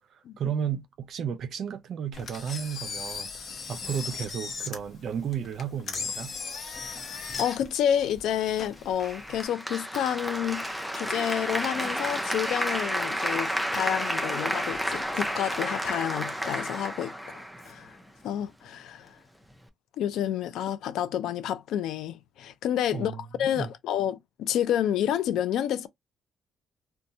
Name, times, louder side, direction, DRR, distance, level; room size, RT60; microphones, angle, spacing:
voice 1, 0.1-3.3 3.7-6.3 22.9-23.7, right 8 dB, 65° right, 0.5 m, -33 dB
Engine, 2.1-9.4, left 5 dB, 50° left, 0.8 m, -38 dB
voice 2, 7.4-18.0 18.2-19.1 20.0-23.1 23.4-25.9, left 10 dB, 80° left, 0.3 m, -29 dB
Applause, 9.0-18.0, equal, ahead, 0.5 m, -31 dB
2.7 x 2.2 x 2.6 m
cardioid pair, 90°, 0 cm